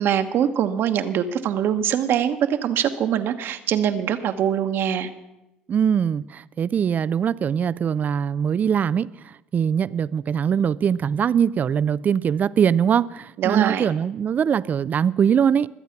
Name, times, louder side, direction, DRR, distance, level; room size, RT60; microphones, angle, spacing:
voice 1, 0.0-5.1 13.4-13.9, right 9 dB, 60° right, 1.2 m, -23 dB
voice 2, 5.7-9.1 9.5-15.7, right 8 dB, 40° right, 0.5 m, -22 dB
22.5 x 8.1 x 5.9 m
supercardioid pair, 80°, 4 cm